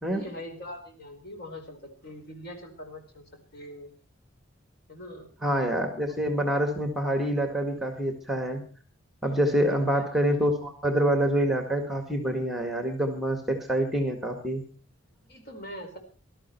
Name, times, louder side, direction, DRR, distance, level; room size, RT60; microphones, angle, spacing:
voice 1, 0.1-3.2 3.5-3.9 4.9-5.3 9.2-10.0 15.0-16.0, left 1 dB, 50° left, 4 dB, 4.4 m, -43 dB
voice 2, 5.4-8.6 9.2-14.6, right 1 dB, ahead, 5 dB, 1.8 m, -26 dB
19.5 x 13.0 x 4.5 m, 0.39 s
head